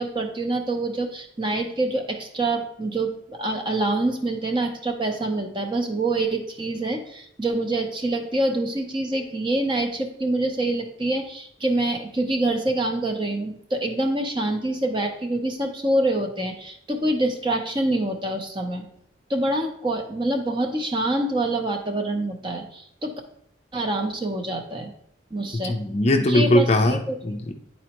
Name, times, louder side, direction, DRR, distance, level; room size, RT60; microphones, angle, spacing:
voice 1, 0.0-18.8 19.3-23.1 23.7-24.9 25.3-25.8 26.3-27.2, right 2 dB, 25° right, 4 dB, 0.7 m, -26 dB
voice 2, 25.6-27.5, left 1 dB, 35° left, 5 dB, 0.5 m, -20 dB
10.5 x 4.2 x 2.9 m, 0.69 s
head